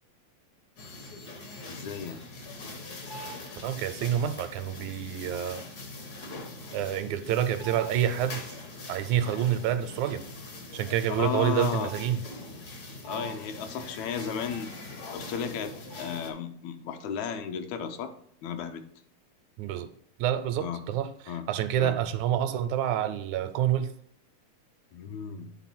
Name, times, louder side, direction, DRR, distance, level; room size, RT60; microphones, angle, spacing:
sound 1, 0.8-16.3, left 2 dB, 60° left, 1.0 m, -42 dB
voice 1, 1.7-2.2 11.1-11.9 13.0-14.7 15.1-18.1 18.4-18.8 20.6-20.9 21.3-21.5 21.8-22.0 24.9-25.5, left 7 dB, 80° left, 7 dB, 1.9 m, -34 dB
voice 2, 3.6-5.6 6.7-8.6 8.9-10.2 10.7-12.2 19.6-19.9 20.2-23.9, right 10 dB, 85° right, 10 dB, 1.9 m, -28 dB
10.0 x 3.7 x 4.2 m, 0.63 s
omnidirectional pair, 3.4 m